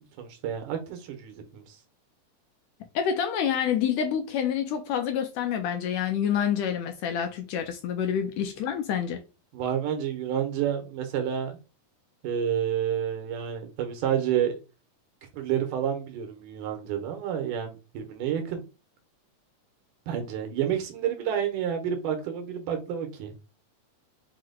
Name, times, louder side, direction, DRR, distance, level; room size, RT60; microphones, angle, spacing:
voice 1, 0.2-1.8 9.5-11.6 12.2-14.6 15.3-18.6 20.1-23.3, right 9 dB, 90° right, 2.4 m, -29 dB
voice 2, 2.9-9.2, left 8 dB, 80° left, 1.6 m, -27 dB
5.9 x 2.1 x 3.8 m
omnidirectional pair, 3.6 m